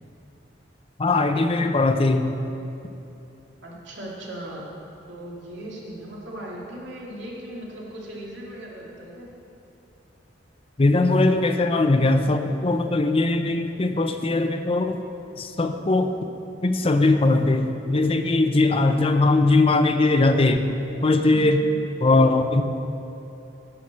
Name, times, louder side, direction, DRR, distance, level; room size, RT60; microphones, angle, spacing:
voice 1, 1.0-2.3 10.8-15.0 15.4-16.1 16.6-20.6 21.0-21.6 22.0-22.6, left 2 dB, 30° left, 7 dB, 0.5 m, -20 dB
voice 2, 3.6-4.7 5.1-9.3 21.2-21.8, right 1 dB, 85° right, -4 dB, 2.5 m, -38 dB
10.5 x 6.5 x 7.2 m, 2.8 s
head